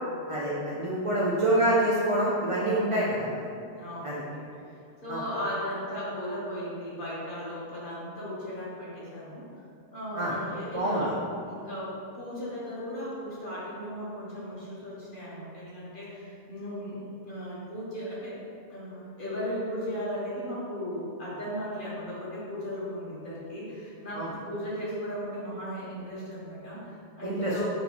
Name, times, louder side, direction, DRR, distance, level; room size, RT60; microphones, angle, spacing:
voice 1, 0.3-3.4 4.0-4.2 5.1-5.2 10.2-10.3 10.7-11.1 24.1-24.3 27.2-27.5, right 1 dB, 60° right, -6 dB, 0.3 m, -26 dB
voice 2, 2.8-3.3 3.7-4.5 5.0-9.5 9.9-11.2 11.5-18.3 18.7-27.7, equal, 45° left, -9 dB, 1.2 m, -36 dB
4.4 x 3.0 x 2.9 m, 2.5 s
omnidirectional pair, 1.2 m